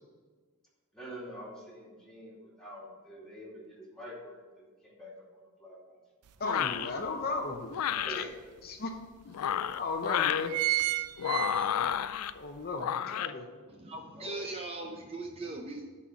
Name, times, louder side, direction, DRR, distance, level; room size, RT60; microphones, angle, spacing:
voice 1, 0.9-6.0 7.8-8.5 14.1-14.4, equal, 5° left, -5 dB, 2.4 m, -46 dB
sound 1, 6.3-6.4 6.8-8.0 8.7-8.8 9.0-9.1 9.8-10.0 10.2-12.1 12.5-12.6, right 17 dB, 85° right, 0.5 m, -31 dB
sound 2, 6.4-6.9 7.7-8.2 9.3-10.5 11.2-12.3 12.8-13.3, left 9 dB, 70° left, 0.4 m, -30 dB
voice 2, 6.4-7.7 8.1-8.2 8.6-8.9 9.7-10.6 12.3-13.5, left 3 dB, 45° left, 3 dB, 0.7 m, -35 dB
voice 3, 13.7-15.9, right 2 dB, 25° right, 2 dB, 0.6 m, -39 dB
9.5 x 4.3 x 6.3 m, 1.4 s
head